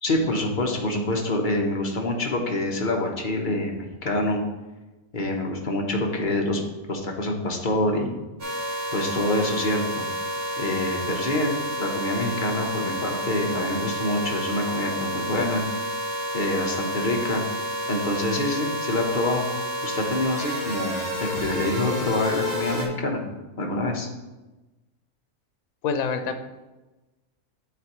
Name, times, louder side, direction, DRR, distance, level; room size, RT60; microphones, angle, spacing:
voice 1, 0.0-4.4 5.1-6.6 6.9-8.2 8.9-10.1 10.6-15.6 16.3-17.4 17.9-19.5 19.8-23.2 23.6-24.1, left 2 dB, 40° left, 0 dB, 1.1 m, -26 dB
sound 1, 8.4-22.8, equal, 45° right, 1.7 m, -30 dB
voice 2, 25.8-26.4, left 5 dB, 80° left, 7 dB, 1.1 m, -26 dB
12.0 x 4.0 x 3.0 m, 1.1 s
omnidirectional pair, 1.5 m